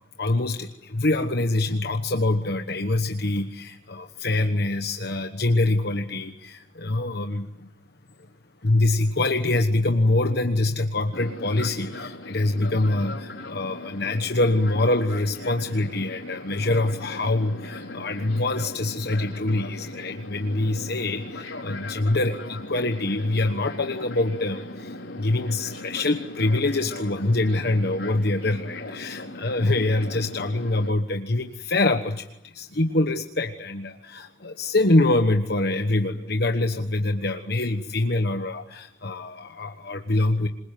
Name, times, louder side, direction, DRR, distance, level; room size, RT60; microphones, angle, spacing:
voice 1, 0.2-7.7 8.6-40.5, left 2 dB, 55° left, 6 dB, 1.3 m, -25 dB
Fixed-wing aircraft airplane, 11.1-30.9, left 1 dB, 75° left, 4.4 m, -38 dB
27.0 x 22.0 x 9.2 m, 0.91 s
head